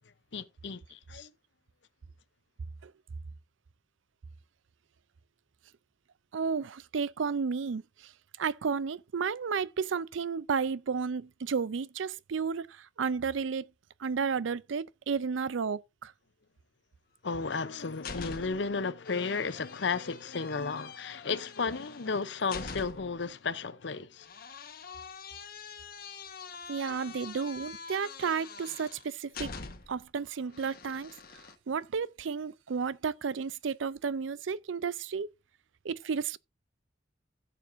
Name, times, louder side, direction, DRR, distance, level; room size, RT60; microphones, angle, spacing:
voice 1, 0.3-1.3 17.2-24.3, left 4 dB, 70° left, 0.7 m, -33 dB
voice 2, 6.3-8.1 8.4-13.7 14.0-16.1 26.7-29.5 29.9-31.1 31.7-35.3 35.8-36.4, right 5 dB, 85° right, 0.5 m, -32 dB
sound 1, 17.4-18.7 19.0-23.2 24.2-30.0 30.5-31.5, left 5 dB, 50° left, 1.4 m, -45 dB
16.0 x 7.0 x 2.7 m
head